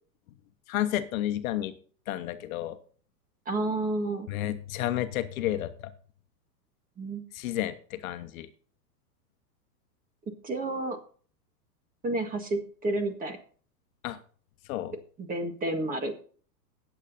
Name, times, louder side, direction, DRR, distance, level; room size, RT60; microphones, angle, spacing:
voice 1, 0.7-1.7 2.1-2.8 4.3-5.9 7.3-8.5 14.0-14.2 14.7-14.9, left 13 dB, 55° left, 10 dB, 1.1 m, -31 dB
voice 2, 3.4-4.3 7.0-7.2 10.4-11.0 12.0-13.4 15.2-16.2, right 2 dB, 15° right, 6 dB, 1.6 m, -30 dB
19.5 x 8.3 x 2.7 m, 0.43 s
hypercardioid pair, 130°, 49 cm